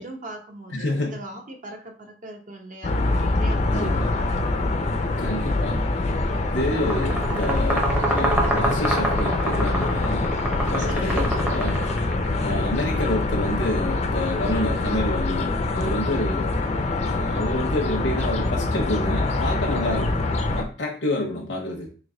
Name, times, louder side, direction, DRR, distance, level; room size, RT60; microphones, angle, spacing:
voice 1, 0.0-4.1 10.8-11.2, right 1 dB, 45° right, 3 dB, 0.8 m, -39 dB
voice 2, 0.7-1.2 3.7-4.1 5.2-5.8 6.5-10.3 10.7-11.8 12.3-16.5 17.0-20.2 20.6-21.9, left 1 dB, 75° left, -1 dB, 0.7 m, -28 dB
sound 1, 2.8-20.6, left 2 dB, 35° left, 0.5 m, -24 dB
sound 2, 6.7-12.4, right 1 dB, 10° right, 0.7 m, -27 dB
3.2 x 3.0 x 3.7 m, 0.39 s
head